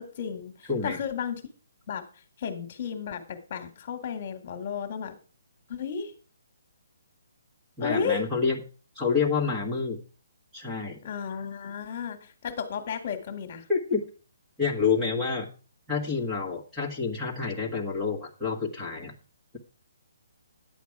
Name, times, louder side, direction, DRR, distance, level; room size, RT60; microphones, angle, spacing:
voice 1, 0.0-1.4 1.9-2.1 2.4-5.1 5.7-6.1 7.8-8.2 11.0-13.6, left 7 dB, 35° left, 8 dB, 1.9 m, -33 dB
voice 2, 0.7-1.0 7.8-8.6 8.9-10.0 10.5-11.0 13.7-14.0 14.6-15.5 15.9-19.1, left 5 dB, ahead, -4 dB, 1.5 m, -28 dB
10.5 x 8.0 x 4.8 m, 0.38 s
hypercardioid pair, 170°, 0 cm